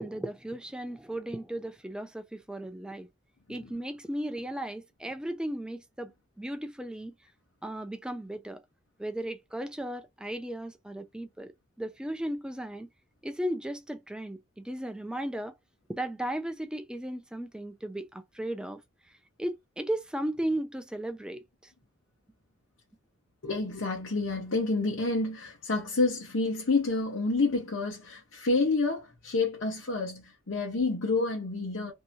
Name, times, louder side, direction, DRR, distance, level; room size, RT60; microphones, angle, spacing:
voice 1, 0.0-3.1 3.5-6.1 6.4-7.1 7.6-8.6 9.0-11.5 11.8-12.9 13.2-15.6 15.9-18.8 19.4-21.7, right 1 dB, 5° right, 0.4 m, -35 dB
voice 2, 23.4-31.9, left 3 dB, 85° left, 0.9 m, -29 dB
2.8 x 2.1 x 2.6 m
head